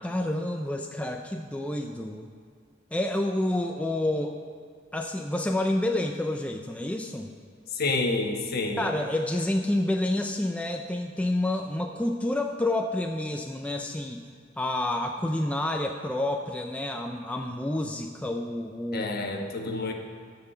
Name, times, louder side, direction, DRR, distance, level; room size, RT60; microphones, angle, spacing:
voice 1, 0.0-2.3 2.9-4.4 4.9-7.3 8.8-14.2 14.6-19.1, left 1 dB, 5° left, 3 dB, 0.4 m, -29 dB
voice 2, 7.7-8.9 18.9-19.9, left 3 dB, 50° left, 3 dB, 1.2 m, -28 dB
14.5 x 5.9 x 5.7 m, 2.1 s
head